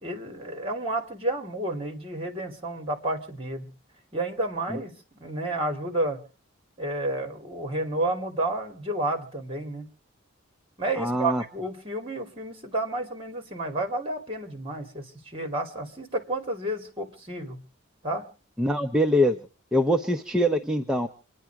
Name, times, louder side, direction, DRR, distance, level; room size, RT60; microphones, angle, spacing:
voice 1, 0.0-3.7 4.1-6.2 6.8-9.9 10.8-17.6 18.0-18.3, right 2 dB, 30° right, 5 dB, 2.8 m, -31 dB
voice 2, 11.0-11.4 18.6-19.4 19.7-21.1, equal, 5° right, 4 dB, 0.8 m, -23 dB
27.5 x 10.5 x 4.8 m, 0.38 s
head